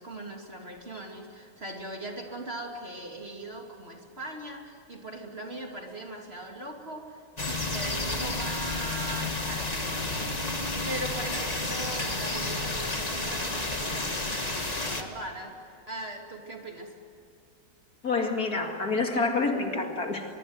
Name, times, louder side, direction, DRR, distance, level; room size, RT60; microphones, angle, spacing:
voice 1, 0.0-10.1 10.5-17.0, right 1 dB, 30° right, 1 dB, 2.9 m, -40 dB
sound 1, 7.4-15.0, left 2 dB, 20° left, 2.0 m, -31 dB
voice 2, 18.0-20.3, left 3 dB, 45° left, 3 dB, 2.6 m, -27 dB
23.5 x 22.5 x 9.5 m, 2.7 s
omnidirectional pair, 2.2 m